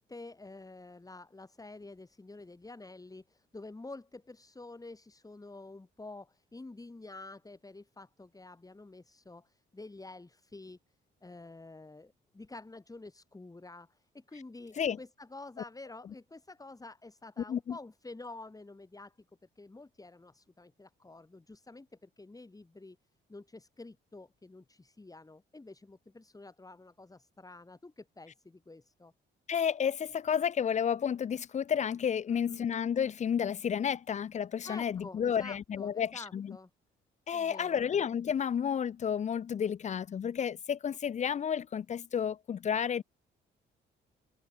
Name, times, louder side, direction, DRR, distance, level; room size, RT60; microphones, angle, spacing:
voice 1, 0.0-10.8 11.2-19.2 19.5-23.0 23.3-29.1 32.3-32.7 34.6-36.7 37.3-37.9, left 2 dB, 15° left, 6.7 m, -49 dB
voice 2, 29.5-36.6 37.3-43.0, left 8 dB, 35° left, 0.5 m, -31 dB
cardioid pair, 90°, 20 cm